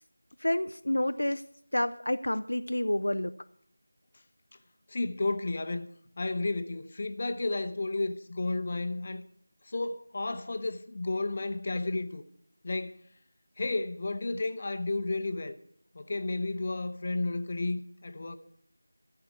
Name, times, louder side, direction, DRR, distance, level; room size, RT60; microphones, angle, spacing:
voice 1, 0.4-1.4 1.7-3.3, left 1 dB, 65° left, 0.5 m, -29 dB
voice 2, 4.9-5.9 6.2-9.2 9.6-12.2 12.6-13.0 13.6-15.6 15.9-18.4, left 2 dB, 30° left, 0.8 m, -32 dB
14.0 x 6.9 x 9.3 m
figure-of-eight pair, 170°, 0 cm